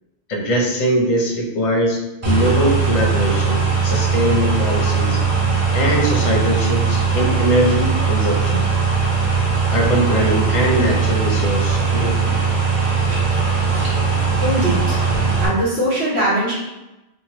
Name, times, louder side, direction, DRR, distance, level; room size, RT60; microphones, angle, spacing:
voice 1, 0.3-5.2 5.7-8.7 9.7-12.4, equal, 45° left, -2 dB, 0.5 m, -21 dB
sound 1, 2.2-15.5, right 5 dB, 35° right, 0.7 m, -19 dB
voice 2, 14.4-15.0 15.4-16.5, right 1 dB, 85° right, -7 dB, 1.4 m, -20 dB
2.9 x 2.3 x 2.9 m, 1.0 s
omnidirectional pair, 1.1 m